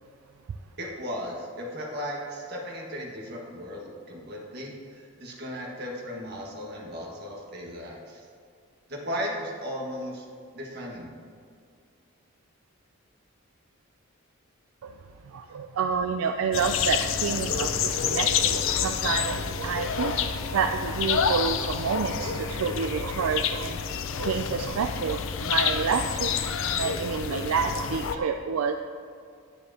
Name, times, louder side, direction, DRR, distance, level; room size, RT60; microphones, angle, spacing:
voice 1, 0.8-8.3 8.9-10.2 10.5-11.1, equal, 50° right, -2 dB, 1.7 m, -36 dB
voice 2, 15.3-20.2 20.4-23.8 24.2-28.8, right 6 dB, 75° right, 6 dB, 0.4 m, -29 dB
sound 1, 16.5-28.2, left 7 dB, 60° left, 0.5 m, -28 dB
9.9 x 9.3 x 2.8 m, 2.3 s
head